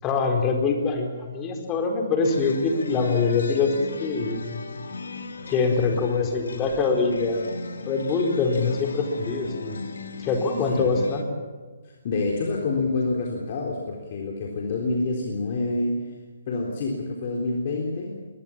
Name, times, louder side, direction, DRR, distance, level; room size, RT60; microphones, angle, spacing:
voice 1, 0.0-4.5 5.5-7.6 7.8-9.8 10.2-11.2, left 4 dB, 20° left, 3 dB, 4.4 m, -24 dB
sound 1, 2.2-11.2, left 3 dB, 70° left, 2.5 m, -37 dB
voice 2, 12.0-16.0 16.5-18.1, left 3 dB, 45° left, 0 dB, 3.7 m, -27 dB
22.5 x 20.5 x 7.4 m, 1.4 s
figure-of-eight pair, 140°, 0 cm